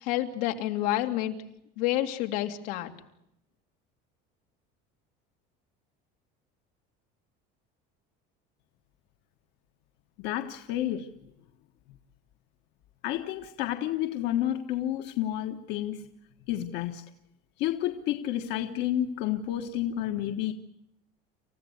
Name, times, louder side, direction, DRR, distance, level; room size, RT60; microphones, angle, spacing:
voice 1, 0.0-1.4 1.8-2.9, left 14 dB, 85° left, 4 dB, 2.6 m, -29 dB
voice 2, 10.2-11.1 13.0-16.0 16.5-17.0 17.6-20.5, left 12 dB, 60° left, 5 dB, 1.5 m, -30 dB
28.5 x 15.5 x 9.5 m, 0.81 s
cardioid pair, 165°, 20 cm